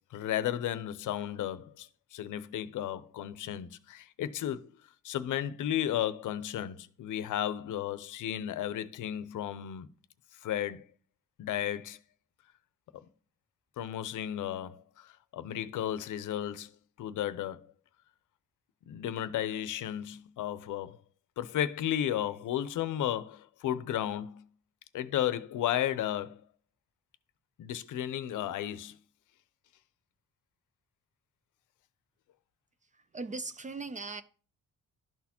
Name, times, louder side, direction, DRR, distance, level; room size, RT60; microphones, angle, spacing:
voice 1, 0.1-4.7 5.0-9.9 10.4-10.8 11.4-12.0 12.9-13.1 13.8-16.7 17.0-17.7 18.9-21.0 21.4-24.4 24.9-26.4 27.6-29.0, left 11 dB, 70° left, 0.6 m, -34 dB
voice 2, 32.8-34.2, right 3 dB, 25° right, 0.3 m, -39 dB
12.0 x 4.1 x 2.9 m
cardioid pair, 125°, 32 cm